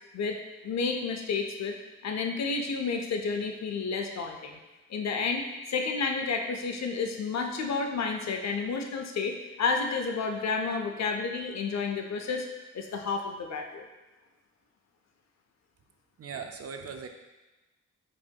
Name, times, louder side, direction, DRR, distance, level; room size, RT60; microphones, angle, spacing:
voice 1, 0.6-1.8 2.0-4.6 4.9-5.4 5.7-12.5 12.7-13.9, left 4 dB, 60° left, 4 dB, 0.5 m, -30 dB
voice 2, 16.2-17.1, right 6 dB, 55° right, 5 dB, 0.4 m, -39 dB
4.9 x 2.7 x 2.2 m, 1.1 s
cardioid pair, 70°, 30 cm